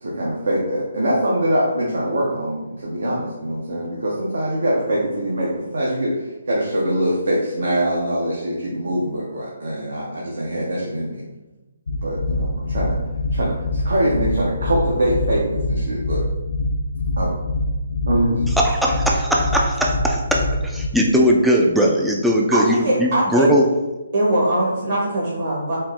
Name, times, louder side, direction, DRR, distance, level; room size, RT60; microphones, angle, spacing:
voice 1, 0.0-11.2 12.0-13.0 13.3-16.2 17.2-17.3 18.1-18.4, right 1 dB, 75° right, -5 dB, 0.8 m, -23 dB
sound 1, 11.9-20.9, left 2 dB, 75° left, 0.5 m, -24 dB
voice 2, 18.6-23.7, equal, ahead, -2 dB, 0.3 m, -19 dB
voice 3, 22.5-23.5 24.1-25.8, right 1 dB, 55° right, -6 dB, 1.2 m, -21 dB
4.4 x 2.0 x 3.5 m, 1.1 s
figure-of-eight pair, 145°, 0 cm